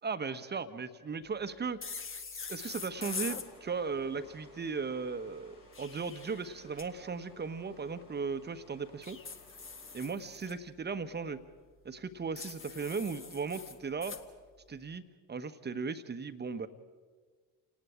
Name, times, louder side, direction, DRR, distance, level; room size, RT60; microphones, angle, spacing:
voice 1, 0.0-1.8 2.3-9.2 9.9-11.4 11.8-14.2 14.7-16.7, right 5 dB, 20° right, 12 dB, 1.3 m, -37 dB
sound 1, 1.8-3.5 5.5-6.9 9.0-10.5 12.4-14.2, left 4 dB, 25° left, 1.7 m, -43 dB
sound 2, 2.7-10.1, left 2 dB, 80° left, 3.4 m, -59 dB
29.5 x 19.0 x 5.0 m, 1.5 s
figure-of-eight pair, 50°, 45 cm